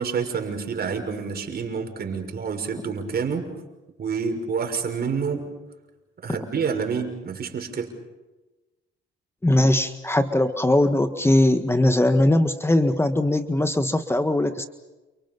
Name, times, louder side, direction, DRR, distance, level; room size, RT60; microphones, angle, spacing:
voice 1, 0.0-3.5 4.0-5.4 6.2-7.9, right 5 dB, 50° right, 5 dB, 6.2 m, -28 dB
voice 2, 9.4-14.6, left 1 dB, 10° left, 8 dB, 1.6 m, -20 dB
29.5 x 29.0 x 5.5 m, 1.1 s
cardioid pair, 90°, 20 cm